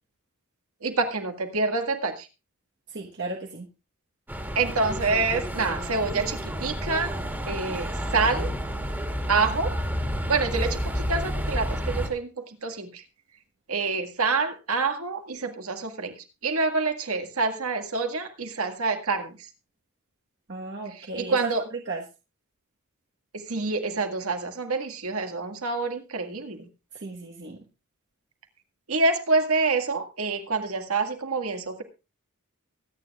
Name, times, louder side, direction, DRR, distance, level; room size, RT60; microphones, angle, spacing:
voice 1, 0.8-2.3 4.6-7.2 7.5-8.5 9.3-9.7 10.3-13.0 13.7-19.3 20.9-21.6 23.3-26.7 28.9-31.8, right 3 dB, 75° right, 6 dB, 1.9 m, -27 dB
voice 2, 2.9-3.7 20.5-21.5 21.9-22.0 26.9-27.6, right 3 dB, 55° right, 0 dB, 1.3 m, -35 dB
sound 1, 4.3-12.1, equal, 10° right, 2.0 m, -30 dB
23.5 x 9.5 x 2.4 m, 0.29 s
head